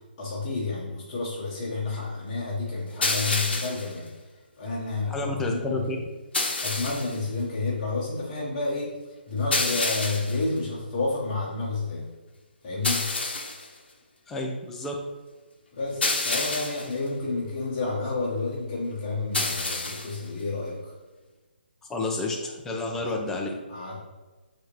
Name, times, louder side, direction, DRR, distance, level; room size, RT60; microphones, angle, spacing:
voice 1, 0.2-4.1 4.6-5.8 6.6-8.9 9.3-12.0 12.6-13.1 15.7-20.9 22.9-23.3 23.7-24.0, left 3 dB, 30° left, -7 dB, 0.9 m, -30 dB
sound 1, 3.0-3.9 6.3-7.2 9.5-10.4 12.8-13.7 16.0-16.9 19.3-20.2, left 3 dB, 70° left, 0.7 m, -28 dB
voice 2, 5.1-6.0 14.3-15.1 21.9-23.5, left 2 dB, 5° left, 0 dB, 0.3 m, -30 dB
4.1 x 2.5 x 3.0 m, 1.2 s
hypercardioid pair, 155°, 6 cm